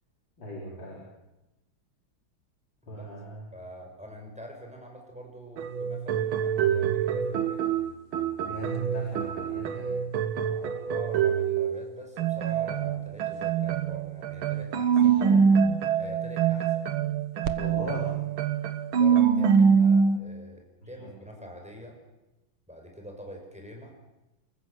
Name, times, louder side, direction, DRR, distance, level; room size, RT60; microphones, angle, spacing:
voice 1, 0.4-1.0 2.9-3.5 8.4-10.0 15.2-15.6 17.5-18.2 20.8-21.1 21.4-21.5, left 1 dB, 60° left, -5 dB, 5.5 m, -39 dB
voice 2, 3.5-7.6 10.4-15.5 16.0-16.8 18.9-22.0 22.7-24.0, equal, 5° right, 1 dB, 5.5 m, -45 dB
Annoying Piano Loop, 5.6-11.8 12.2-20.2, right 7 dB, 75° right, 2.0 m, -25 dB
29.0 x 15.0 x 8.0 m, 0.98 s
omnidirectional pair, 2.3 m